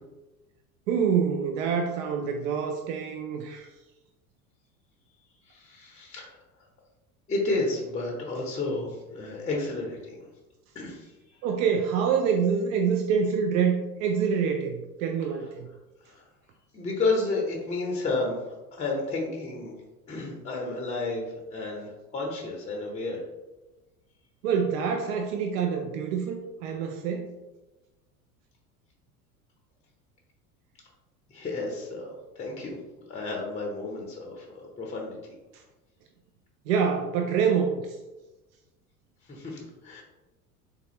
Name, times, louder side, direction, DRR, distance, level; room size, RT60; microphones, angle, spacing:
voice 1, 0.9-3.7 11.4-15.7 24.4-27.3 36.7-38.0, right 6 dB, 60° right, 3 dB, 0.5 m, -26 dB
voice 2, 5.4-6.4 7.3-10.2 10.7-11.4 16.0-16.2 16.7-19.7 20.1-23.2 31.3-32.8 33.1-35.3 39.2-40.0, left 3 dB, 15° left, -1 dB, 0.6 m, -32 dB
3.5 x 2.5 x 2.9 m, 1.1 s
hypercardioid pair, 75°, 45 cm